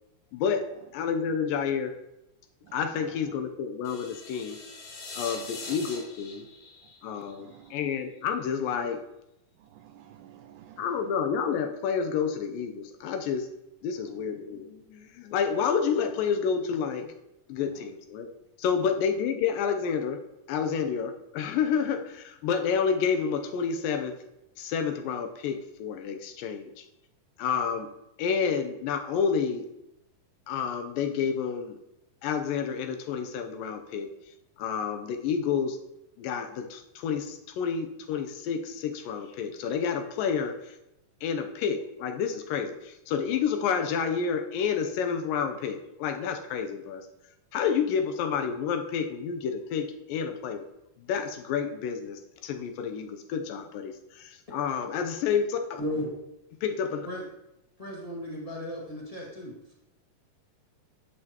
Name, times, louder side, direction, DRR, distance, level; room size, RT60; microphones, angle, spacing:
voice 1, 0.3-0.7 0.9-1.9 2.7-4.6 5.1-6.5 7.0-9.0 10.8-13.5 13.8-17.1 17.5-18.3 18.6-20.2 20.5-24.2 24.6-26.9 27.4-27.9 28.2-29.7 30.5-31.8 32.2-34.1 34.6-35.8 36.2-40.8 41.2-47.1 47.5-50.6 51.0-55.8 56.6-57.1, left 6 dB, 85° left, 6 dB, 2.4 m, -29 dB
sound 1, 3.8-7.9, left 3 dB, 55° left, 3.4 m, -42 dB
voice 2, 7.2-7.7 9.6-10.9, right 11 dB, 80° right, 7 dB, 1.8 m, -52 dB
voice 3, 55.8-56.1 57.1-57.2 57.8-59.5, left 1 dB, 20° left, -4 dB, 1.1 m, -35 dB
10.0 x 7.7 x 2.9 m, 0.88 s
omnidirectional pair, 3.9 m